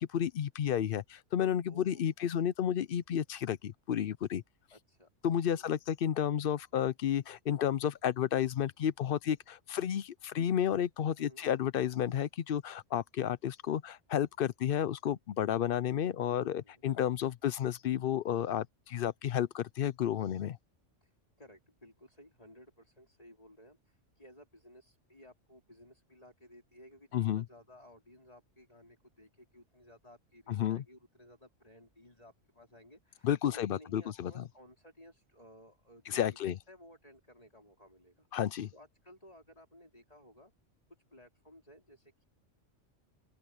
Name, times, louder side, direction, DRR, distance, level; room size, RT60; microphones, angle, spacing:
voice 1, 0.0-4.4 5.2-20.6 27.1-27.4 30.5-30.8 33.2-34.4 36.1-36.6 38.3-38.7, left 10 dB, 60° left, 0.6 m, -32 dB
voice 2, 1.7-2.4 4.7-5.7 11.2-11.5 16.3-16.8 21.0-21.1 21.4-38.3 38.7-40.5 41.1-42.2, equal, 30° left, 4.3 m, -57 dB
open air
omnidirectional pair, 1.3 m